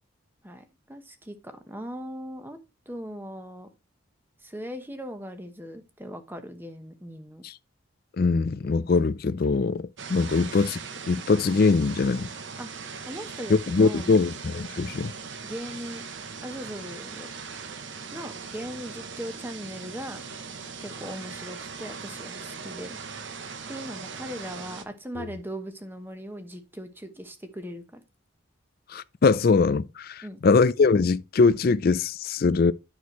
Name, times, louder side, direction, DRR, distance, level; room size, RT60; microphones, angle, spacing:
voice 1, 0.4-2.6 2.9-3.7 4.4-7.4 10.3-10.6 12.6-12.7 13.1-14.1 15.4-16.0 16.4-17.3 18.1-20.2 20.8-23.0 23.7-28.0 30.2-30.4, equal, 10° right, 1.0 m, -39 dB
voice 2, 8.2-10.8 11.1-12.3 13.5-15.1 25.2-25.3 28.9-32.7, left 4 dB, 45° left, 0.4 m, -22 dB
sound 1, 10.0-24.8, right 5 dB, 60° right, 0.9 m, -40 dB
9.5 x 6.2 x 3.1 m
head